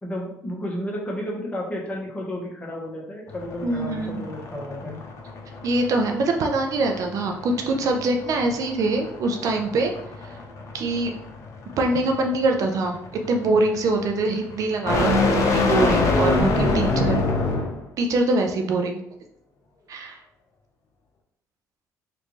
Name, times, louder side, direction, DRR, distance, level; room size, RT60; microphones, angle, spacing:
voice 1, 0.0-5.0, left 1 dB, 20° left, -2 dB, 1.1 m, -32 dB
sound 1, 3.3-17.9, left 3 dB, 55° left, 0.7 m, -26 dB
voice 2, 3.6-4.2 5.6-9.9 10.2-10.4 10.7-11.1 11.8-13.0 13.3-17.2 18.0-19.0 19.9-20.2, right 2 dB, 60° right, 3 dB, 0.5 m, -23 dB
3.3 x 2.5 x 3.1 m, 0.73 s
supercardioid pair, 80°, 7 cm